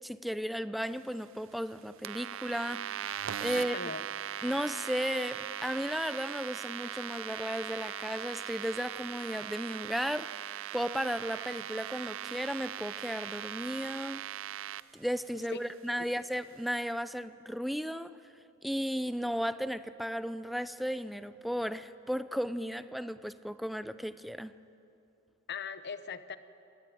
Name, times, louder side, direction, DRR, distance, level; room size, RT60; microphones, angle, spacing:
voice 1, 0.0-3.0 3.4-3.8 4.4-14.2 14.9-18.1 18.6-24.5, equal, ahead, 13 dB, 0.5 m, -35 dB
sound 1, 2.0-14.8, right 10 dB, 65° right, 0.5 m, -39 dB
voice 2, 3.5-4.0 15.5-15.6 25.5-26.4, left 5 dB, 55° left, 12 dB, 0.9 m, -39 dB
25.0 x 18.5 x 9.3 m, 2.8 s
head